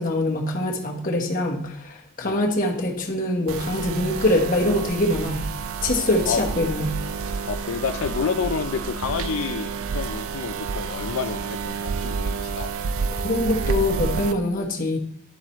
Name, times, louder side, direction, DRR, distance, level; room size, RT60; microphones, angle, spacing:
voice 1, 0.0-5.4 5.8-7.0 13.1-15.0, left 1 dB, 40° left, 0 dB, 1.2 m, -24 dB
sound 1, 3.5-14.3, right 5 dB, 90° right, 0.5 m, -29 dB
voice 2, 6.3-6.7 7.5-12.9, left 5 dB, 85° left, 8 dB, 0.5 m, -29 dB
10.5 x 7.6 x 3.1 m, 0.65 s
head